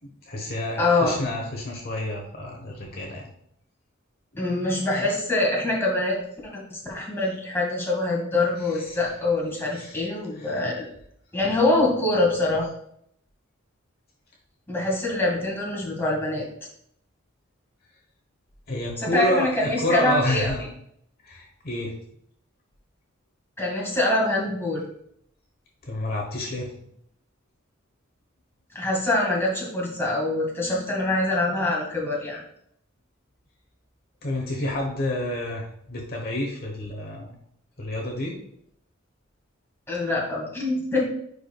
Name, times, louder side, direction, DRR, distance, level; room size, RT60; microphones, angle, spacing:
voice 1, 0.0-3.2 8.7-9.0 9.7-10.0 10.4-10.7 18.7-20.7 21.2-21.9 25.8-26.7 34.2-37.3 37.8-38.4, left 1 dB, 50° left, 0 dB, 1.2 m, -29 dB
voice 2, 0.8-1.2 4.3-10.9 11.3-12.7 14.7-16.5 19.0-20.5 23.6-24.8 28.7-32.4 39.9-41.0, left 2 dB, 10° left, -3 dB, 2.1 m, -24 dB
9.9 x 4.9 x 2.4 m, 0.71 s
head